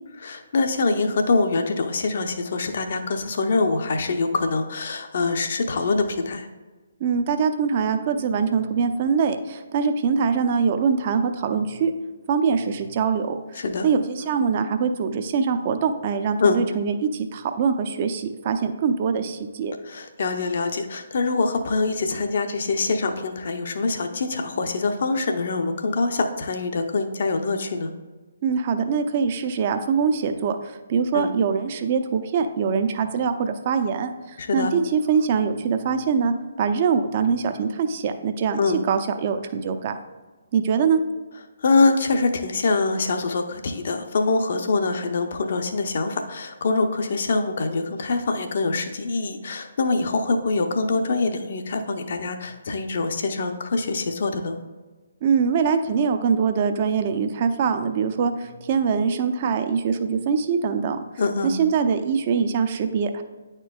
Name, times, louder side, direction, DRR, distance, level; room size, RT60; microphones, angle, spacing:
voice 1, 0.2-6.5 13.6-13.9 16.4-16.6 19.8-27.9 31.1-31.3 34.4-34.7 38.6-38.8 41.6-54.6 61.2-61.5, left 3 dB, 50° left, 6 dB, 0.6 m, -24 dB
voice 2, 7.0-11.9 12.3-13.4 13.8-19.8 28.4-38.6 38.9-40.0 40.5-41.0 55.2-61.0 61.4-63.2, right 6 dB, 35° right, 8 dB, 0.5 m, -23 dB
9.8 x 4.4 x 2.3 m, 1.3 s
figure-of-eight pair, 135°, 0 cm